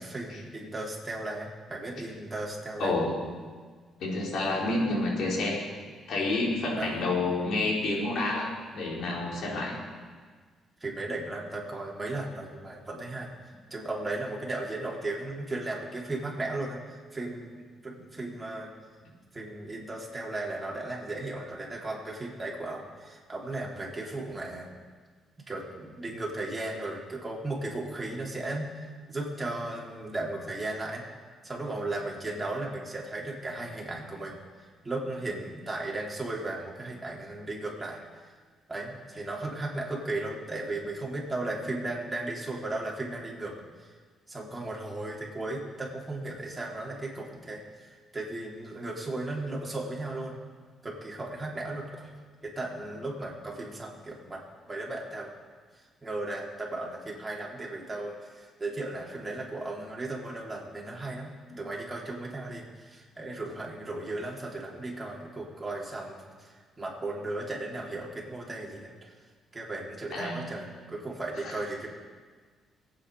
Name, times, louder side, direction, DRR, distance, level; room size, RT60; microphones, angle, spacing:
voice 1, 0.0-2.9 6.8-7.1 10.8-13.3 13.7-18.7 19.3-24.7 25.5-31.0 31.4-34.4 34.8-38.3 38.7-43.9 44.3-50.3 50.8-52.1 52.4-54.4 54.7-55.3 55.8-69.1 69.5-71.9, right 2 dB, 20° right, -3 dB, 3.9 m, -36 dB
voice 2, 2.8-3.2 4.0-5.6 6.1-9.7 70.1-70.6, left 2 dB, 70° left, -3 dB, 4.6 m, -29 dB
22.0 x 9.3 x 5.1 m, 1.5 s
cardioid pair, 90°, 0 cm